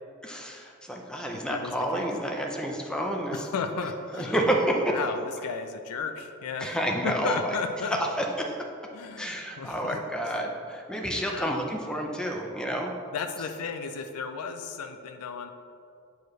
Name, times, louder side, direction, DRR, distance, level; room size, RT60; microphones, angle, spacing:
voice 1, 0.2-3.5 4.1-5.0 6.6-7.6 7.8-8.6 9.2-12.9, right 1 dB, 5° left, 1 dB, 0.5 m, -29 dB
voice 2, 1.5-2.1 3.3-4.4 4.9-6.8 7.0-8.0 8.9-10.0 10.2-10.3 11.2-11.5 13.1-15.5, left 5 dB, 85° left, 6 dB, 0.4 m, -34 dB
7.9 x 4.7 x 3.1 m, 2.4 s
head